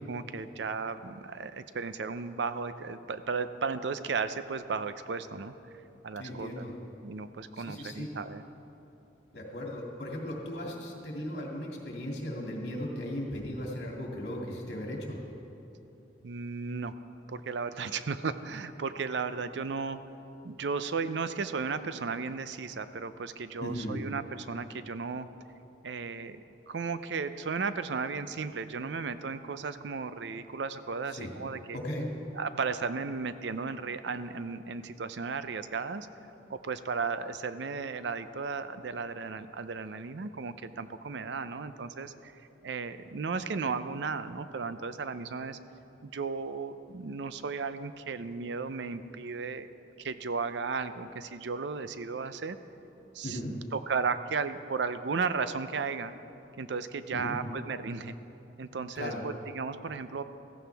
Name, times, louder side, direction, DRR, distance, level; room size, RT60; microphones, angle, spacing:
voice 1, 0.1-5.5 6.0-6.7 7.0-8.4 16.2-16.9 17.3-20.0 20.4-25.3 25.8-31.8 32.4-36.1 36.5-42.3 42.6-45.6 46.0-49.7 50.0-52.6 53.1-56.1 56.6-58.1 58.6-60.2, right 5 dB, 70° right, 12 dB, 0.5 m, -35 dB
voice 2, 6.2-6.7 7.5-8.1 9.3-15.2 23.6-24.0 31.1-31.3 31.7-32.1 53.2-53.5 57.1-57.4 59.0-59.2, left 1 dB, 70° left, -2 dB, 2.4 m, -37 dB
15.5 x 15.0 x 3.4 m, 2.9 s
head